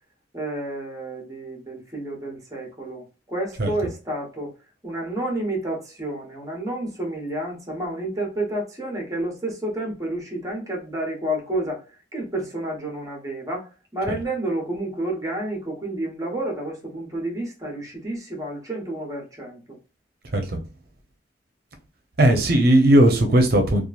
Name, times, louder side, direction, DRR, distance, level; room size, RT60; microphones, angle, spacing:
voice 1, 0.3-4.5 4.8-11.8 12.1-19.8, right 1 dB, 20° right, 1.0 m, -30 dB
voice 2, 22.2-23.8, right 1 dB, 60° right, 0.7 m, -17 dB
3.0 x 2.4 x 2.4 m
head